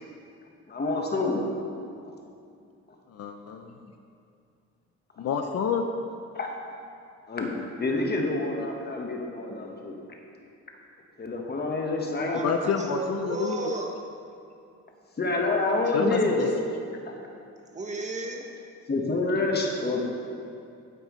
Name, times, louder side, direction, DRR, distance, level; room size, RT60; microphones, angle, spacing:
voice 1, 0.7-1.5 2.0-2.1 6.3-6.5 7.3-10.0 11.2-12.7 15.2-16.5 17.0-17.1 18.9-20.0, left 2 dB, 35° left, 1 dB, 1.3 m, -27 dB
voice 2, 3.1-3.8 5.2-5.9 12.4-13.6 15.9-16.5, left 6 dB, 55° left, 5 dB, 0.6 m, -28 dB
voice 3, 12.2-13.9 17.7-18.4, right 2 dB, 25° right, 1 dB, 1.0 m, -34 dB
9.0 x 7.9 x 3.2 m, 2.5 s
cardioid pair, 90°, 30 cm